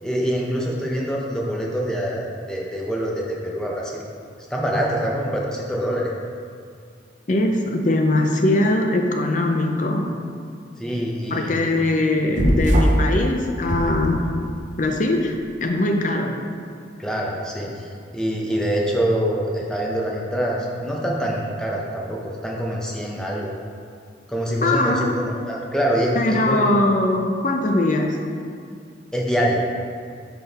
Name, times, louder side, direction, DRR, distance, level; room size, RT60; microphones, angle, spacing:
voice 1, 0.0-4.0 4.5-6.1 10.8-11.7 17.0-23.5 24.3-26.7 29.1-29.6, equal, 5° left, -3 dB, 0.7 m, -25 dB
voice 2, 7.3-10.1 11.3-14.3 14.8-16.4 24.6-25.1 26.2-28.2, left 2 dB, 40° left, 3 dB, 0.5 m, -21 dB
sound 1, 12.4-13.1 13.6-14.6, equal, 40° right, 0.6 m, -20 dB
5.9 x 5.2 x 4.1 m, 2.3 s
head